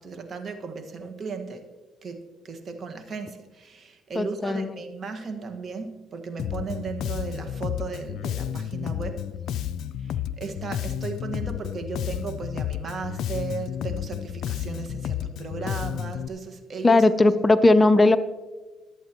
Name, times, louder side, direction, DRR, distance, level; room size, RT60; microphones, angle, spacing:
voice 1, 0.0-1.7 2.0-9.2 10.0-17.3, right 4 dB, 45° right, 5 dB, 1.6 m, -36 dB
voice 2, 4.2-4.7 16.8-18.2, left 2 dB, 25° left, 12 dB, 0.6 m, -18 dB
Bass guitar, 6.4-16.3, left 10 dB, 70° left, 0.4 m, -31 dB
22.0 x 8.3 x 3.0 m, 1.3 s
supercardioid pair, 65°, 0 cm